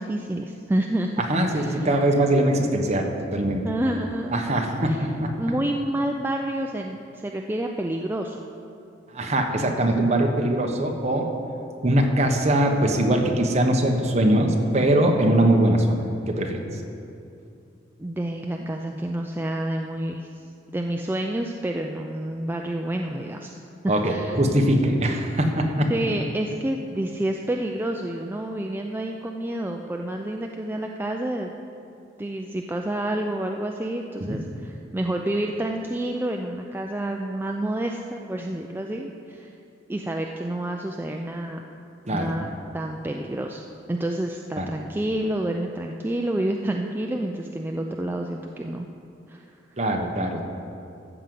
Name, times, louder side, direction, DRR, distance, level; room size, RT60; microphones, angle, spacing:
voice 1, 0.0-1.1 1.5-1.9 3.6-4.4 4.9-5.0 5.4-8.4 18.0-20.3 20.7-23.5 23.8-24.4 25.9-31.5 32.2-39.5 39.9-41.7 42.1-48.9 49.3-49.4, right 1 dB, 10° right, 2 dB, 0.4 m, -29 dB
voice 2, 1.3-3.6 4.3-5.3 9.1-11.3 11.8-15.9 16.3-16.6 23.9-25.9 34.3-34.4 42.1-42.3 44.6-44.7 49.8-50.5, right 1 dB, 35° right, 2 dB, 1.1 m, -22 dB
13.5 x 5.2 x 7.7 m, 2.6 s
head